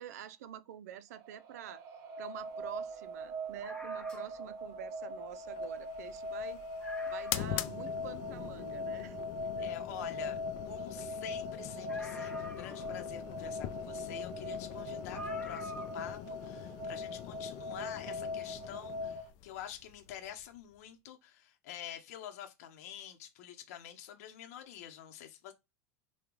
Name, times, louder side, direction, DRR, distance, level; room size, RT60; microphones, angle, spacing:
voice 1, 0.0-1.8 2.2-6.6 7.1-9.2 9.6-9.7, right 9 dB, 75° right, 0.5 m, -47 dB
sound 1, 1.1-19.3, left 1 dB, 45° right, 0.9 m, -41 dB
sound 2, 3.6-4.5 5.6-5.7 6.0-6.1 6.5-6.6 6.8-7.6 8.1-8.2 11.9-13.2 14.3-14.4 15.1-16.1 16.4-16.5, equal, 10° left, 1.1 m, -47 dB
sound 3, 5.5-20.8, left 12 dB, 55° left, 0.4 m, -44 dB
voice 2, 9.6-25.5, left 10 dB, 70° left, 0.8 m, -47 dB
3.6 x 2.3 x 3.0 m
hypercardioid pair, 105°, 9 cm